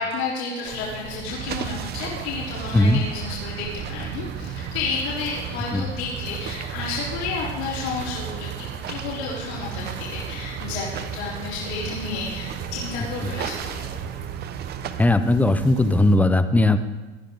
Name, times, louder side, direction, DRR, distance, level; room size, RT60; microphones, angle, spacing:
voice 1, 0.0-8.5 8.9-13.9, left 4 dB, 75° left, -7 dB, 4.0 m, -31 dB
sound 1, 0.6-16.2, right 7 dB, 50° right, 3.0 m, -38 dB
sound 2, 1.3-15.1, right 8 dB, 30° right, 0.8 m, -35 dB
voice 2, 15.0-16.8, left 2 dB, 5° left, 10 dB, 0.6 m, -18 dB
19.0 x 11.5 x 3.9 m, 1.1 s
supercardioid pair, 130°, 32 cm